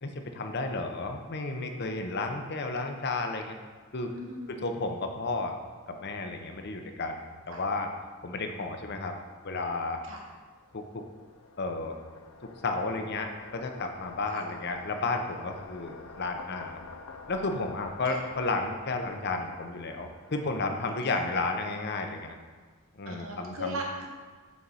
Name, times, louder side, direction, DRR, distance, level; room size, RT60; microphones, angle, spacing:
voice 1, 0.0-3.6 3.9-4.1 4.5-5.6 5.9-7.9 8.2-9.2 9.4-10.0 10.7-11.0 11.6-12.0 12.6-16.8 17.3-22.3 22.9-23.8, left 3 dB, 50° left, 5 dB, 0.7 m, -32 dB
voice 2, 4.1-4.7 7.5-7.6 10.0-10.2 14.3-14.4 18.0-18.2 21.1-21.2 23.0-24.1, equal, 65° right, 0 dB, 1.1 m, -38 dB
sound 1, 10.4-21.0, left 3 dB, 85° left, 0.6 m, -48 dB
6.3 x 4.6 x 5.5 m, 1.5 s
head